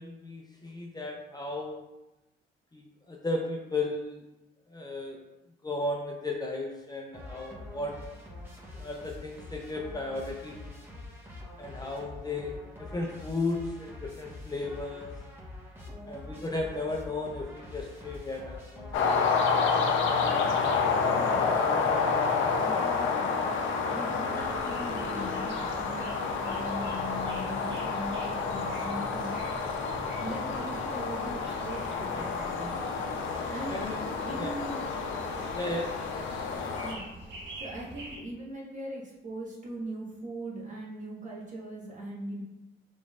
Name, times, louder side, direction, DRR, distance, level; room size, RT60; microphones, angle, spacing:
voice 1, 0.0-1.8 2.7-4.2 4.7-5.2 5.6-8.0 8.7-10.9 11.6-15.1 16.1-19.5 33.7-34.0 34.4-34.5 35.5-36.1, left 2 dB, 20° left, 0 dB, 0.5 m, -35 dB
sound 1, 7.1-19.5, left 2 dB, 10° right, 1.1 m, -45 dB
sound 2, 18.9-36.9, left 5 dB, 80° left, 0.6 m, -29 dB
voice 2, 21.2-21.5 22.6-23.4 23.9-29.5 30.2-32.7 33.5-33.8 34.2-34.9 36.8-37.0 37.6-42.4, right 1 dB, 40° right, -4 dB, 1.2 m, -40 dB
sound 3, 24.3-38.2, right 1 dB, 65° right, 1.4 m, -46 dB
4.9 x 3.2 x 2.4 m, 0.98 s
cardioid pair, 90°, 20 cm